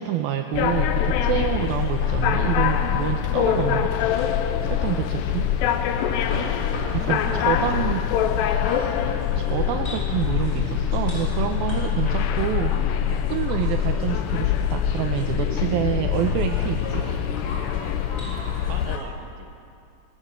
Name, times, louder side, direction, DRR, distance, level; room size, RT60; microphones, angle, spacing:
voice 1, 0.0-3.9 4.7-5.5 6.9-8.0 9.4-17.1, right 11 dB, 75° right, 6 dB, 2.4 m, -27 dB
sound 1, 0.5-19.0, left 9 dB, 85° left, 3.0 m, -24 dB
sound 2, 1.6-19.0, equal, 20° left, 7.0 m, -40 dB
voice 2, 6.9-8.4 18.7-19.6, right 5 dB, 55° right, 4 dB, 2.8 m, -38 dB
27.0 x 18.5 x 6.9 m, 2.4 s
omnidirectional pair, 4.7 m